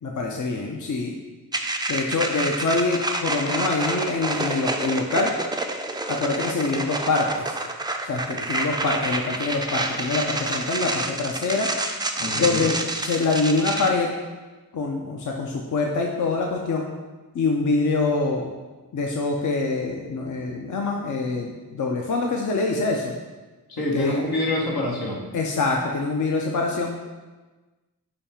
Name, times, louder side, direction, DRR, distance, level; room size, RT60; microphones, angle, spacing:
voice 1, 0.0-1.1 1.9-5.3 6.1-7.6 8.0-11.7 12.3-14.1 14.7-16.9 17.3-18.5 18.9-23.1 23.9-24.2 25.3-26.9, left 3 dB, 55° left, 0 dB, 0.6 m, -25 dB
sound 1, 1.5-13.9, right 2 dB, 10° right, 0.4 m, -28 dB
voice 2, 12.2-12.7 23.7-25.2, left 1 dB, 75° left, -2 dB, 1.1 m, -26 dB
5.2 x 2.3 x 4.2 m, 1.2 s
cardioid pair, 40°, 37 cm